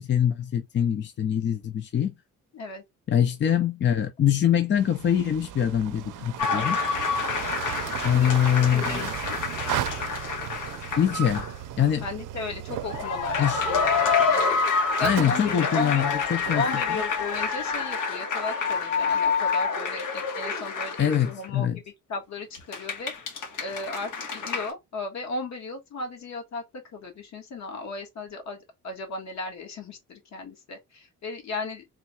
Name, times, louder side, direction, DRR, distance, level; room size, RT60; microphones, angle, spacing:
voice 1, 0.0-2.1 3.1-6.8 8.0-9.0 11.0-11.4 11.8-12.0 13.4-13.6 15.0-16.6 21.0-21.8, left 9 dB, 40° left, 0.5 m, -23 dB
voice 2, 2.5-2.8 8.1-8.4 8.7-9.4 12.0-14.6 15.0-16.1 16.5-23.1 23.6-31.8, left 3 dB, 60° left, 1.6 m, -35 dB
sound 1, 4.7-17.7, right 12 dB, 85° right, 0.5 m, -36 dB
sound 2, 6.4-11.5 11.8-11.9 12.8-21.5 22.5-24.7, left 5 dB, 80° left, 1.5 m, -27 dB
3.6 x 2.3 x 4.2 m
cardioid pair, 140°, 31 cm